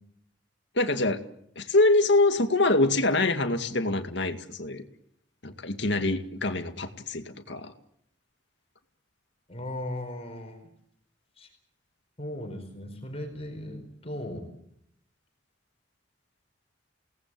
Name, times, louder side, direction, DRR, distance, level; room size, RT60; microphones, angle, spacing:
voice 1, 0.8-1.2 1.6-4.8 5.4-7.7, left 2 dB, 70° left, 7 dB, 2.2 m, -25 dB
voice 2, 9.5-10.6 11.4-11.5 12.2-14.5, left 1 dB, 35° left, 3 dB, 4.8 m, -37 dB
28.5 x 19.0 x 7.7 m, 0.71 s
head